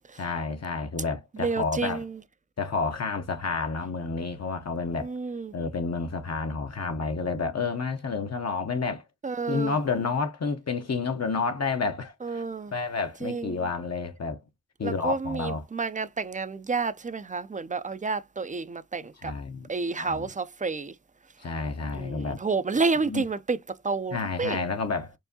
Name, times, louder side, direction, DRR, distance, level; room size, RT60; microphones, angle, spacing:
voice 1, 0.2-2.0 2.6-5.1 5.5-9.0 9.5-12.4 12.7-14.4 14.8-15.6 19.2-19.7 19.9-20.3 21.4-22.4 23.0-23.3 24.1-25.1, left 4 dB, 55° left, 0.7 m, -30 dB
voice 2, 1.3-2.2 4.9-5.5 9.2-9.7 12.2-12.7 13.2-13.7 14.8-19.3 19.7-20.9 21.9-23.6 23.8-24.6, right 4 dB, 25° right, 0.4 m, -30 dB
4.6 x 2.6 x 2.6 m
wide cardioid pair, 70°, 31 cm